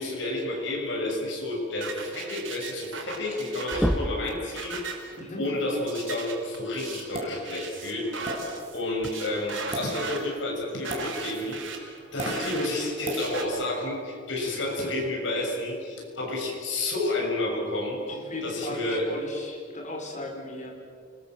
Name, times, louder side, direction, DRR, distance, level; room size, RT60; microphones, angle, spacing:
voice 1, 0.0-8.1 8.7-11.8 12.1-18.0 18.4-19.1, left 2 dB, 75° left, 0 dB, 6.9 m, -30 dB
sound 1, 1.8-13.4, right 4 dB, 80° right, 4.9 m, -38 dB
sound 2, 3.4-3.5 3.7-4.4 6.1-6.2 8.0-8.2 9.0-9.1, equal, ahead, 0.7 m, -28 dB
voice 2, 5.2-5.5 18.1-20.7, left 2 dB, 40° left, 2 dB, 5.2 m, -37 dB
sound 3, 7.1-7.4 8.2-8.4 9.6-9.8 10.9-11.1 12.2-12.3 13.0-13.2, right 2 dB, 30° right, 5.1 m, -33 dB
29.0 x 21.5 x 7.7 m, 2.2 s
head